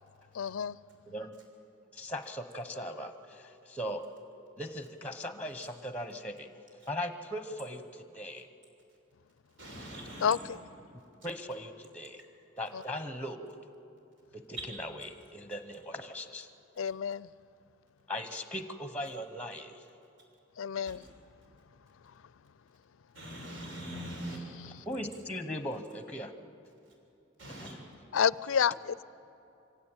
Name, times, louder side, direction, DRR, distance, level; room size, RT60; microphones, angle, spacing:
voice 1, 0.3-0.8 10.2-10.6 12.7-12.8 16.8-17.3 20.6-21.0 28.1-29.0, left 7 dB, 90° left, 0.4 m, -29 dB
voice 2, 1.9-4.0 4.6-6.5 6.8-8.5 11.2-12.2 12.6-13.5 14.3-16.5 18.1-19.8 24.8-26.3 27.6-27.8, left 1 dB, 10° left, 0.9 m, -39 dB
voice 3, 9.6-10.3 23.1-24.4 27.4-27.7, equal, 75° right, 6.6 m, -42 dB
25.0 x 16.5 x 8.9 m
head